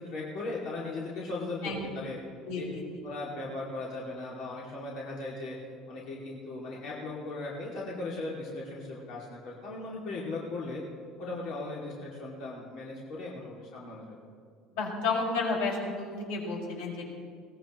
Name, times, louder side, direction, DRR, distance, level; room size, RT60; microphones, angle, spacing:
voice 1, 0.0-2.2 2.5-2.6 3.0-5.6 5.9-10.8 11.2-14.2, left 2 dB, 50° left, -5 dB, 2.5 m, -38 dB
voice 2, 2.5-2.8 14.7-17.0, left 3 dB, 85° left, -2 dB, 5.4 m, -31 dB
21.5 x 19.0 x 3.1 m, 2.1 s
cardioid pair, 175°, 0 cm